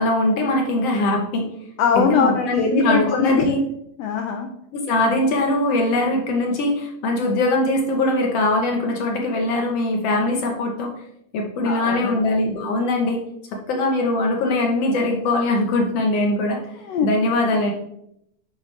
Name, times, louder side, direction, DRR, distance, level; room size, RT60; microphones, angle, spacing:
voice 1, 0.0-1.5 1.9-3.6 4.7-10.9 11.3-13.2 13.7-16.6 17.0-17.7, left 2 dB, 65° left, 2 dB, 1.7 m, -21 dB
voice 2, 1.8-3.5 4.0-4.5 11.6-12.2 16.9-17.1, left 6 dB, 85° left, 4 dB, 1.4 m, -21 dB
9.5 x 6.4 x 3.2 m, 0.78 s
omnidirectional pair, 3.6 m